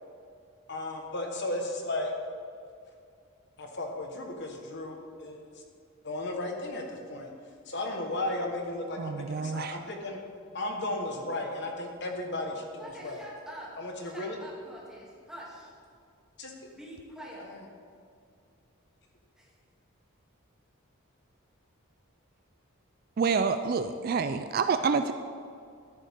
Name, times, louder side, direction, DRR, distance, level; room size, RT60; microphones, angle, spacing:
voice 1, 0.7-2.1 3.6-5.4 6.0-7.3 7.7-10.2 10.5-13.2 13.8-14.3 16.4-16.5, left 1 dB, 55° left, 2 dB, 1.3 m, -34 dB
voice 2, 9.0-9.8 23.2-25.1, right 5 dB, 45° right, 9 dB, 0.4 m, -28 dB
voice 3, 12.8-13.8 14.0-15.7 16.8-17.5 19.3-19.6, equal, 5° right, -5 dB, 2.4 m, -45 dB
13.0 x 10.5 x 3.6 m, 2.4 s
head